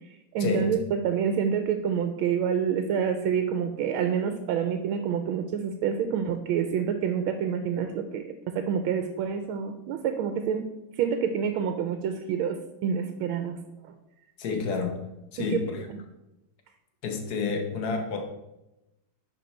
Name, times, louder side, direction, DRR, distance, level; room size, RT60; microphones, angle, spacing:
voice 1, 0.3-10.7 11.0-13.6 13.8-13.9 15.4-15.6, right 7 dB, 85° right, 8 dB, 1.4 m, -27 dB
voice 2, 14.4-15.0 15.3-15.9 17.0-18.2, left 4 dB, 55° left, 4 dB, 1.4 m, -29 dB
10.5 x 4.3 x 4.3 m, 0.95 s
omnidirectional pair, 2.2 m